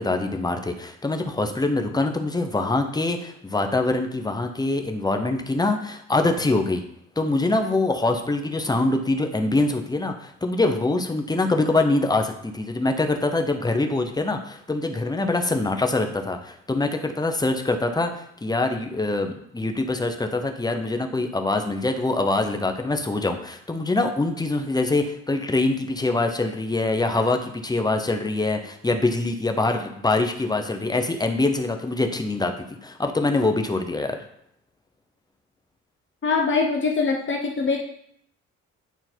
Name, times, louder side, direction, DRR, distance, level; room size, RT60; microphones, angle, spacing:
voice 1, 0.0-6.8 7.2-34.2, left 2 dB, 15° left, 5 dB, 0.9 m, -24 dB
voice 2, 36.2-37.8, left 4 dB, 40° left, 1 dB, 1.0 m, -23 dB
9.2 x 3.8 x 4.6 m, 0.71 s
cardioid pair, 90°, 30 cm